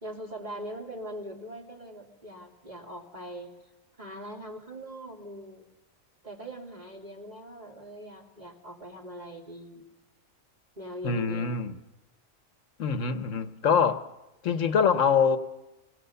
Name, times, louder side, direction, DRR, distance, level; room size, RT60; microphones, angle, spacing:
voice 1, 0.0-3.5 4.0-5.7 6.2-9.9 10.8-11.7, right 1 dB, 35° right, 3.0 m, -41 dB
voice 2, 11.0-11.7 12.8-14.1 14.4-15.4, left 6 dB, 75° left, 1.3 m, -24 dB
26.0 x 18.0 x 6.8 m
omnidirectional pair, 1.4 m